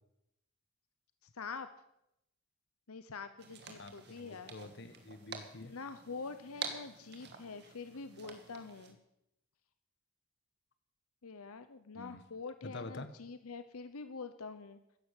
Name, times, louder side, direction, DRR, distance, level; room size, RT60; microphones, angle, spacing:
voice 1, 1.3-1.7 2.9-4.5 5.6-9.0 11.2-14.8, left 4 dB, 80° left, 10 dB, 0.9 m, -45 dB
sound 1, 3.4-8.9, right 5 dB, 50° right, 2.1 m, -48 dB
voice 2, 3.8-5.7 11.9-12.2 12.6-13.1, left 2 dB, 50° left, 10 dB, 1.3 m, -47 dB
14.0 x 10.5 x 8.5 m, 0.83 s
head